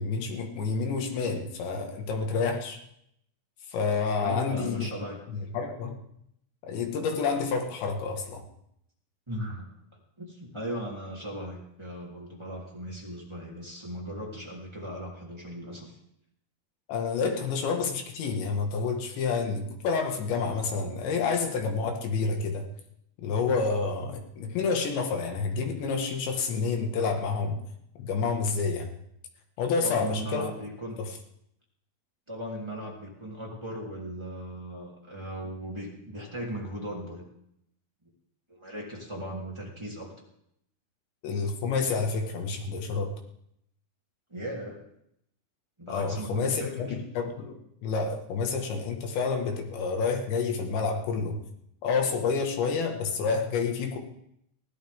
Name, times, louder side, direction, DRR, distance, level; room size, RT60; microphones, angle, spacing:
voice 1, 0.0-2.8 3.7-4.9 5.3-6.0 6.6-8.4 16.9-22.6 23.2-27.6 28.0-28.9 29.6-30.5 41.2-43.1 45.9-51.4 51.8-54.0, left 4 dB, 65° left, 3 dB, 3.8 m, -29 dB
voice 2, 4.2-5.2 9.3-9.7 10.2-16.0 29.8-31.0 32.3-37.2 38.5-40.1 44.3-44.8 45.8-47.0, equal, 10° right, -3 dB, 1.9 m, -37 dB
23.0 x 16.5 x 3.7 m, 0.75 s
omnidirectional pair, 6.0 m